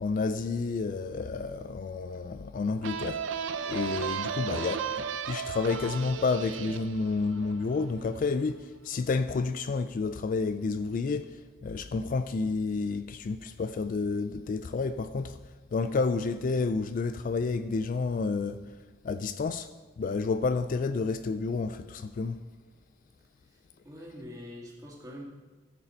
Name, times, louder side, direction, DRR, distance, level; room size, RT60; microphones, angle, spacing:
voice 1, 0.0-3.2 3.7-15.4 15.7-18.6 19.0-19.7 20.0-22.4, left 4 dB, 45° left, 0.3 m, -30 dB
sound 1, 2.8-8.3, right 7 dB, 75° right, 0.6 m, -35 dB
voice 2, 23.5-25.2, left 1 dB, 20° right, 2.1 m, -45 dB
14.5 x 6.8 x 4.4 m
head